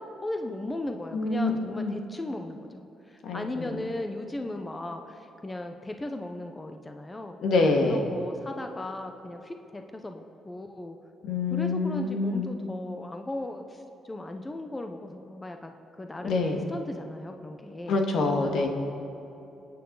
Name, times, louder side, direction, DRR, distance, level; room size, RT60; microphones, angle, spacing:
voice 1, 0.0-7.4 7.8-11.0 11.5-18.0, left 1 dB, 20° left, 5 dB, 1.0 m, -37 dB
voice 2, 1.1-2.0 3.2-3.8 7.4-8.0 11.2-12.5 16.2-16.6 17.9-18.7, left 3 dB, 70° left, 2 dB, 1.9 m, -26 dB
25.0 x 9.5 x 4.1 m, 2.9 s
cardioid pair, 90°, 0 cm